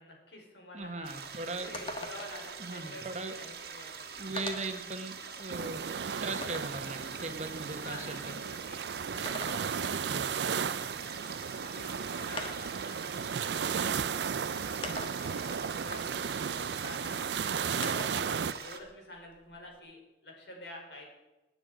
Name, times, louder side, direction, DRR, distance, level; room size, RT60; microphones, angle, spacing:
voice 1, 0.0-1.1 1.6-4.1 7.5-8.8 9.1-11.2 11.6-17.3 17.8-21.1, left 1 dB, 75° left, 0 dB, 5.3 m, -49 dB
voice 2, 0.7-1.8 2.6-3.3 4.2-5.8 6.2-8.3 9.9-10.9 17.8-18.1, right 2 dB, 40° right, 6 dB, 1.4 m, -39 dB
sound 1, 0.8-0.9 1.2-1.3 1.7-2.5 3.6-3.7 4.4-4.8 5.4-6.8 9.0-10.0 11.5-11.6 12.4-12.8 13.8-13.9 14.8-15.5 17.8-18.3 18.7-19.8, left 2 dB, 30° left, 1.6 m, -42 dB
sound 2, 1.0-18.8, right 6 dB, 60° right, 1.8 m, -44 dB
sound 3, 5.5-18.5, right 7 dB, 80° right, 0.5 m, -35 dB
18.5 x 9.9 x 5.1 m, 1.0 s
head